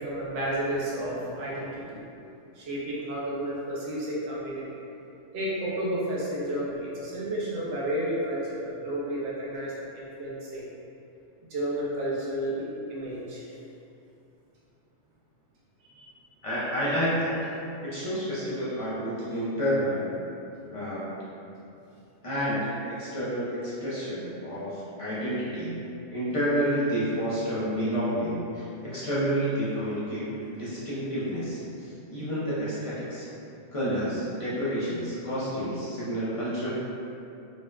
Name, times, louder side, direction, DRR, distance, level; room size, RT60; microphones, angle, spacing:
voice 1, 0.0-2.3 2.5-4.6 5.3-10.7 11.5-13.5 15.9-16.2 28.9-29.0, right 1 dB, 65° right, -6 dB, 0.8 m, -32 dB
voice 2, 16.4-17.4 17.8-20.1 20.7-21.1 22.2-25.8 26.1-33.3 33.7-36.7, equal, 50° left, -10 dB, 0.4 m, -29 dB
2.7 x 2.1 x 2.2 m, 2.7 s
omnidirectional pair, 1.3 m